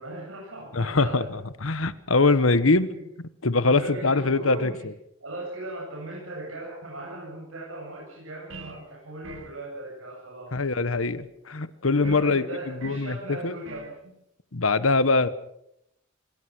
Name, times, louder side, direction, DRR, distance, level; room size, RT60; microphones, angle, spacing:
voice 1, 0.0-1.3 2.2-2.3 2.6-3.0 3.6-4.8 5.2-10.6 12.0-14.1, right 1 dB, 90° right, -3 dB, 8.0 m, -38 dB
voice 2, 0.7-2.9 3.4-4.7 10.5-12.4 12.8-13.6 14.5-15.3, left 3 dB, 90° left, 14 dB, 1.3 m, -23 dB
sound 1, 8.5-8.9 9.2-9.6 12.0-12.3 12.8-13.1 13.6-14.0, right 3 dB, 70° right, 2.2 m, -43 dB
27.0 x 21.0 x 6.2 m, 0.77 s
head